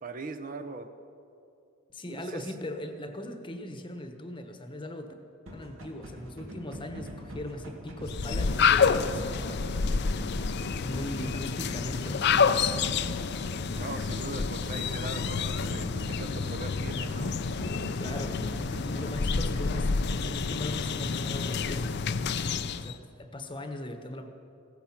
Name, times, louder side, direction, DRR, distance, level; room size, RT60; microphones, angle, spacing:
voice 1, 0.0-0.9 2.1-2.5 13.7-17.4, right 3 dB, 40° right, 9 dB, 0.7 m, -40 dB
voice 2, 1.9-5.1 5.5-9.7 10.8-12.7 17.9-18.4 18.8-22.0 22.8-24.3, left 1 dB, 25° left, 7 dB, 1.1 m, -39 dB
sound 1, 5.5-20.2, equal, 75° right, 2.4 m, -43 dB
sound 2, 8.0-22.9, left 5 dB, 55° left, 0.5 m, -29 dB
16.0 x 14.5 x 5.9 m, 2.6 s
head